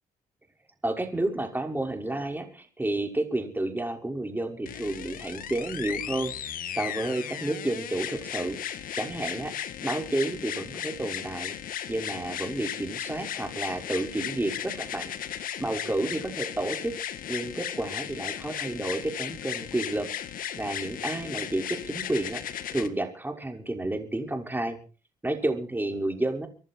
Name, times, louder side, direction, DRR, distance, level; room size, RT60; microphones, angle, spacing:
voice 1, 0.8-9.5 9.8-11.5 11.9-16.9 17.3-20.1 20.6-24.8 25.2-26.5, right 2 dB, 15° right, 3 dB, 5.8 m, -31 dB
sound 1, 4.7-22.9 23.8-23.9, left 10 dB, 75° left, 1.8 m, -36 dB
25.5 x 11.0 x 4.7 m, 0.38 s
cardioid pair, 70°, 15 cm